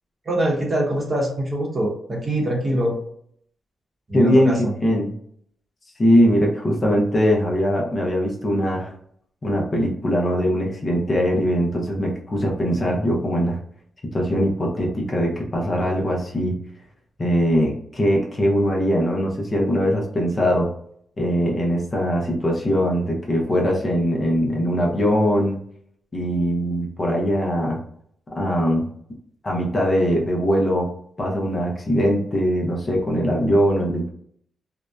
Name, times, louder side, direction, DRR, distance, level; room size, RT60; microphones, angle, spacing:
voice 1, 0.3-2.9 4.1-4.7, right 1 dB, 35° right, -2 dB, 0.8 m, -23 dB
voice 2, 4.1-4.6 4.8-5.1 6.0-8.9 9.4-13.6 14.1-16.6 17.2-20.7 21.2-25.6 26.1-27.8 28.3-28.8 29.4-30.9 31.2-34.1, equal, 35° left, -1 dB, 0.6 m, -21 dB
2.6 x 2.1 x 2.2 m, 0.66 s
cardioid pair, 95°, 0 cm